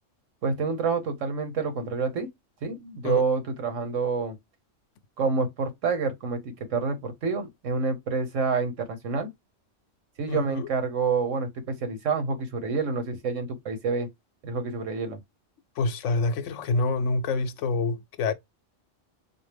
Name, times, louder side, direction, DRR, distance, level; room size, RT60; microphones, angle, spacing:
voice 1, 0.4-2.3 2.6-4.4 5.2-9.3 10.2-14.1 14.4-15.2, right 4 dB, 80° right, 1.4 m, -28 dB
voice 2, 10.3-10.7 15.8-18.3, left 3 dB, 75° left, 0.9 m, -27 dB
4.3 x 2.1 x 3.3 m
omnidirectional pair, 1.3 m